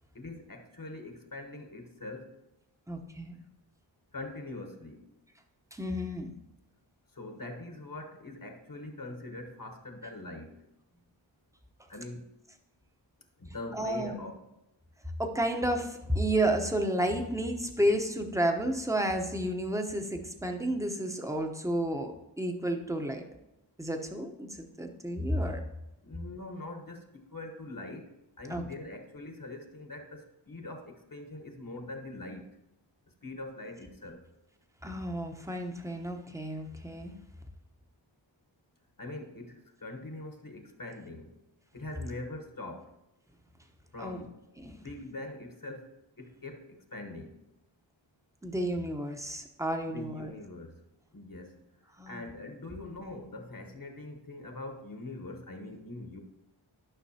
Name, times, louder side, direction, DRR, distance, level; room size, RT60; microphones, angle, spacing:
voice 1, 0.1-2.3 4.1-5.1 7.1-10.6 11.9-12.3 13.4-14.4 26.0-32.5 33.2-34.2 39.0-41.4 41.7-42.9 43.9-44.4 44.7-45.9 46.2-47.4 49.9-50.8 51.1-51.6 51.8-56.2, left 2 dB, 45° left, 4 dB, 1.2 m, -43 dB
voice 2, 2.9-3.4 5.7-6.3 13.7-14.2 15.2-23.2 23.8-25.6 28.5-28.6 34.8-37.1 44.0-44.2 44.6-44.8 48.4-50.3 52.0-52.2 52.7-52.8, right 1 dB, 5° right, 4 dB, 1.0 m, -31 dB
12.5 x 5.8 x 2.9 m, 0.91 s
wide cardioid pair, 45°, 46 cm